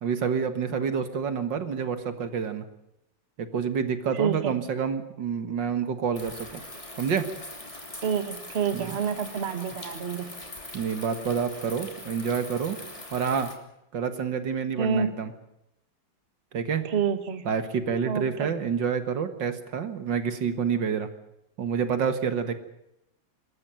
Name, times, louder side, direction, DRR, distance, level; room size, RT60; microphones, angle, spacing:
voice 1, 0.0-2.7 3.4-6.6 7.0-7.3 8.7-9.0 10.7-12.8 13.1-13.5 13.9-15.3 16.5-16.9 17.5-21.1 21.6-22.5, right 6 dB, 65° right, 9 dB, 2.2 m, -28 dB
voice 2, 4.1-4.5 8.0-10.3 14.8-15.1 16.8-17.4 18.1-18.5, right 6 dB, 35° right, 8 dB, 1.7 m, -28 dB
sound 1, 6.1-13.6, left 1 dB, 15° left, 3.1 m, -42 dB
26.0 x 13.5 x 9.0 m, 0.82 s
omnidirectional pair, 2.1 m